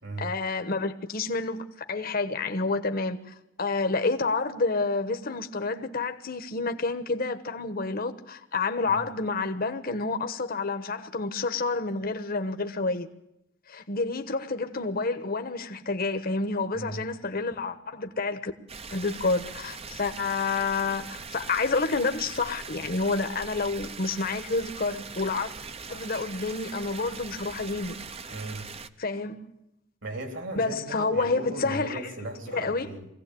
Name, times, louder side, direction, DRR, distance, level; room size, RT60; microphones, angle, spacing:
voice 1, 0.2-3.2 3.6-13.1 13.7-18.5 18.9-25.5 25.9-28.0 29.0-29.4 30.5-32.0 32.5-32.9, left 3 dB, 50° left, 1.2 m, -29 dB
voice 2, 16.7-17.1 28.3-28.7 30.0-33.1, right 2 dB, 70° right, 4.1 m, -37 dB
sound 1, 18.7-28.9, right 5 dB, 30° right, 0.8 m, -41 dB
22.0 x 16.5 x 8.5 m
head